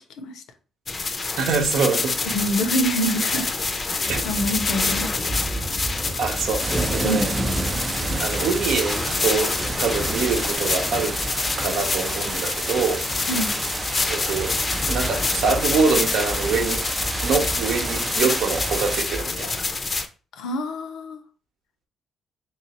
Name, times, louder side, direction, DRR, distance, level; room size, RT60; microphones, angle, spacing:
sound 1, 0.9-20.1, left 3 dB, 35° left, 0.4 m, -27 dB
voice 1, 1.4-2.1 4.1-4.3 6.2-7.3 8.2-11.1 11.6-13.0 14.1-14.6 14.9-16.8 17.2-19.6, right 5 dB, 75° right, 0.8 m, -24 dB
voice 2, 2.3-3.5 3.9-5.4 7.0-7.3 13.3-13.5 20.4-21.2, equal, 80° left, 0.6 m, -26 dB
sound 2, 4.0-19.4, right 1 dB, 5° right, 0.7 m, -32 dB
sound 3, 6.6-19.0, right 4 dB, 30° right, 0.3 m, -33 dB
3.3 x 3.1 x 2.9 m
cardioid pair, 90°, 0 cm